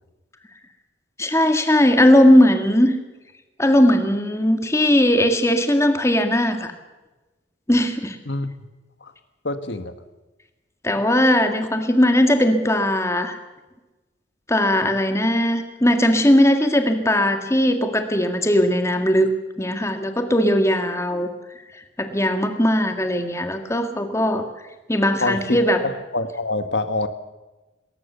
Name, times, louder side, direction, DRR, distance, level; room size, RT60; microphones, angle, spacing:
voice 1, 1.2-2.9 3.6-6.7 7.7-8.2 10.8-13.4 14.5-19.3 19.6-21.3 22.0-24.5 24.9-25.8, left 1 dB, 15° left, 6 dB, 1.8 m, -18 dB
voice 2, 9.4-9.9 25.2-27.1, left 2 dB, 70° left, 10 dB, 1.7 m, -26 dB
20.5 x 19.0 x 6.9 m, 1.1 s
head